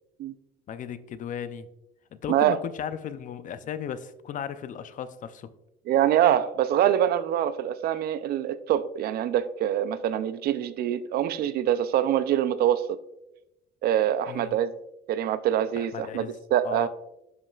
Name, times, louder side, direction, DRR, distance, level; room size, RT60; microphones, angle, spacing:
voice 1, 0.7-1.7 2.1-5.5 14.3-14.6 15.7-16.4 16.6-16.9, left 8 dB, 50° left, 13 dB, 0.5 m, -36 dB
voice 2, 5.9-13.0 13.8-14.7 15.1-16.2 16.5-16.9, right 11 dB, 65° right, 14 dB, 0.5 m, -24 dB
11.0 x 5.4 x 2.4 m, 0.88 s
cardioid pair, 110°, 17 cm